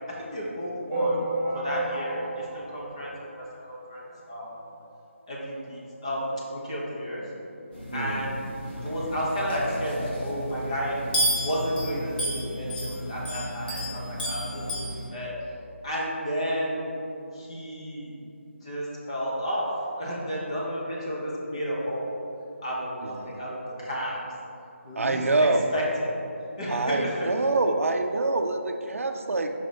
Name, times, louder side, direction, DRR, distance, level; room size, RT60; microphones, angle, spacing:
voice 1, 0.1-1.3 1.5-4.5 5.3-7.3 7.9-8.4 8.8-11.0 11.3-15.3 15.8-16.9 17.3-18.1 18.6-19.7 19.9-22.1 22.6-24.2 24.8-26.2 26.6-27.3, equal, 25° left, -5 dB, 1.1 m, -32 dB
sound 1, 0.9-3.8 4.2-4.3 4.5-4.7 5.0-5.1 5.9-6.0 6.5-6.6, right 2 dB, 20° right, 0.8 m, -31 dB
sound 2, 7.7-15.0, equal, 45° left, 1.5 m, -32 dB
voice 2, 7.9-8.3 23.0-23.3 25.0-25.7 26.7-29.5, right 2 dB, 80° right, 5 dB, 0.5 m, -26 dB
5.5 x 3.9 x 5.0 m, 2.7 s
figure-of-eight pair, 175°, 7 cm